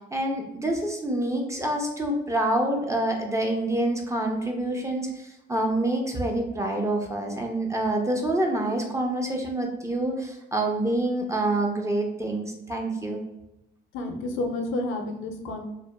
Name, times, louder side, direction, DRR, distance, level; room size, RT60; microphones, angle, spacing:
voice 1, 0.1-13.2, right 1 dB, 15° right, 1 dB, 0.5 m, -27 dB
voice 2, 13.9-15.7, left 2 dB, 80° left, 4 dB, 0.5 m, -30 dB
2.7 x 2.2 x 2.2 m, 0.90 s
cardioid pair, 90°, 20 cm